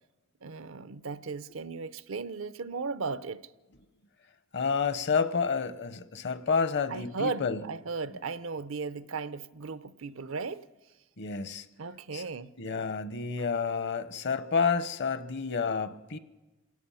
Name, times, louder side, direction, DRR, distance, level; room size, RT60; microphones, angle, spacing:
voice 1, 0.4-3.5 6.9-10.6 11.8-12.9 13.4-13.5, right 4 dB, 75° right, 0.6 m, -36 dB
voice 2, 4.5-7.7 11.2-11.6 12.1-12.3 12.6-16.2, left 5 dB, 55° left, 0.8 m, -29 dB
27.0 x 17.0 x 5.6 m
head